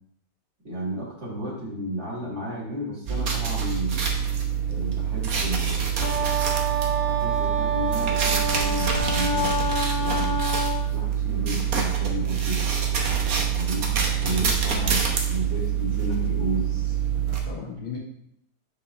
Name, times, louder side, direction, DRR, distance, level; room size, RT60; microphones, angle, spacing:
voice 1, 0.6-4.0 4.7-6.3 7.1-10.4 10.9-13.0 13.5-13.9 14.2-16.9, equal, 35° right, -5 dB, 2.6 m, -32 dB
sound 1, 3.1-17.4, right 8 dB, 55° right, 1.4 m, -25 dB
Wind instrument woodwind instrument, 6.0-10.9, right 2 dB, 10° left, 1.5 m, -27 dB
voice 2, 14.7-15.0 17.1-18.0, left 6 dB, 85° left, -5 dB, 2.4 m, -38 dB
7.4 x 6.1 x 3.4 m, 0.73 s
omnidirectional pair, 2.1 m